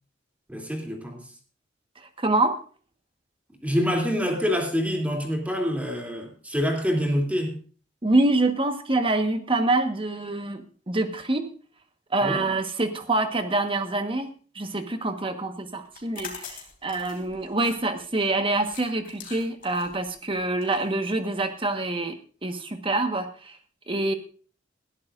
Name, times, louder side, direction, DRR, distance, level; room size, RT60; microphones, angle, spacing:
voice 1, 0.5-1.2 3.6-7.6 12.2-12.5, equal, 10° right, 1 dB, 2.9 m, -26 dB
voice 2, 2.0-2.6 8.0-11.5 12.1-22.2 22.4-23.6 23.9-24.1, right 2 dB, 30° right, 7 dB, 1.4 m, -26 dB
sound 1, 15.8-21.6, left 6 dB, 50° left, 3.5 m, -44 dB
20.0 x 12.5 x 2.6 m, 0.38 s
head